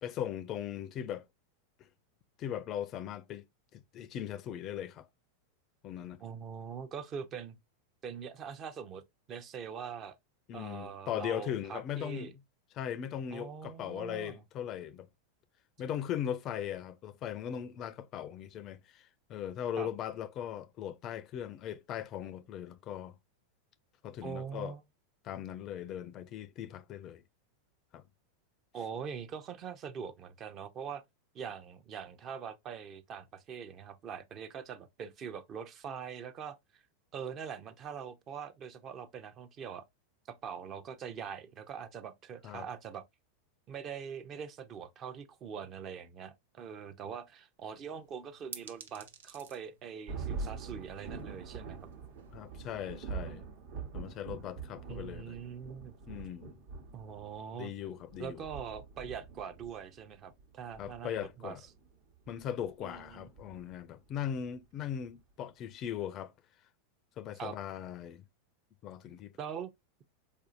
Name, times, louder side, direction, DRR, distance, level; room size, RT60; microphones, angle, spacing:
voice 1, 0.0-1.3 2.4-3.5 3.7-5.1 5.8-6.2 10.5-12.4 12.7-15.1 15.8-23.1 24.0-24.7 25.2-27.2 27.9-28.0 42.4-42.7 52.3-53.5 53.9-55.4 56.1-56.6 57.6-58.4 60.8-61.6 62.3-66.3 67.2-68.2 68.8-69.3, left 10 dB, 40° left, 0.4 m, -39 dB
voice 2, 6.2-7.6 8.0-9.0 9.3-10.2 10.5-12.3 13.3-14.4 19.8-19.9 24.2-24.8 28.7-31.0 31.3-36.8 37.1-39.9 40.3-43.0 43.7-51.9 54.9-55.9 56.9-57.7 58.2-61.6 62.8-63.3 67.4-67.6 69.4-69.7, right 7 dB, 40° right, 0.6 m, -43 dB
sound 1, 47.6-52.8, right 6 dB, 80° right, 0.6 m, -54 dB
Thunder, 50.1-64.0, right 4 dB, 60° right, 1.0 m, -44 dB
4.2 x 2.7 x 2.4 m
hypercardioid pair, 95°, 0 cm